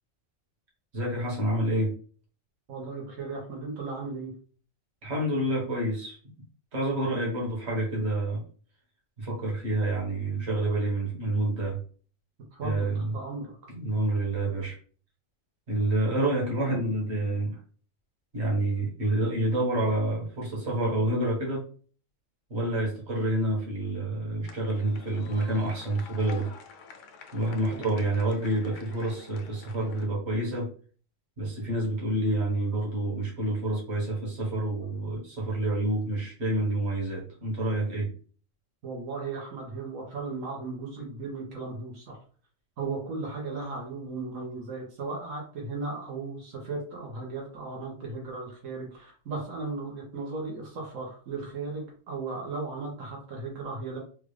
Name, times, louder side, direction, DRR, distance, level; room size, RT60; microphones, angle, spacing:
voice 1, 0.9-1.9 5.0-6.2 6.7-8.4 9.2-11.8 12.6-13.1 13.7-14.7 15.7-17.6 18.3-21.6 22.5-26.5 27.3-30.7 31.4-38.1, right 2 dB, 55° right, -3 dB, 1.6 m, -28 dB
voice 2, 2.7-4.3 12.5-13.5 27.7-27.8 38.8-42.2 42.8-54.0, right 3 dB, 85° right, -2 dB, 1.4 m, -36 dB
sound 1, 24.4-30.1, left 5 dB, 75° left, 1.0 m, -48 dB
3.7 x 2.4 x 3.2 m, 0.41 s
omnidirectional pair, 1.3 m